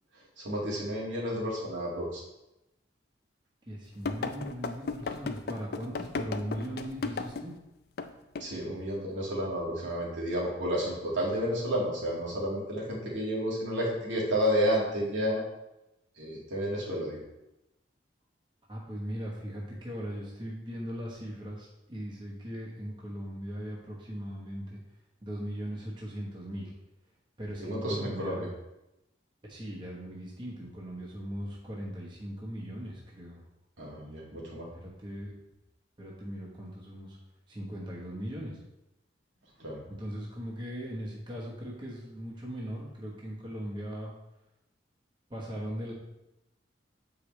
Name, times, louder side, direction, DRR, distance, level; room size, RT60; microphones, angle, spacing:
voice 1, 0.4-2.2 8.4-15.4 16.2-17.2 27.6-28.5 33.8-34.7 39.6-39.8, equal, 80° right, -5 dB, 2.0 m, -31 dB
voice 2, 3.7-7.5 18.7-24.8 25.2-26.7 27.4-28.4 29.5-33.4 34.8-35.3 36.0-37.2 37.5-38.6 39.9-44.1 45.3-45.9, equal, 25° right, -4 dB, 1.1 m, -39 dB
sound 1, 4.1-7.5 8.0-8.1 8.4-8.5, left 4 dB, 55° left, 0.4 m, -35 dB
7.5 x 4.9 x 3.2 m, 0.92 s
head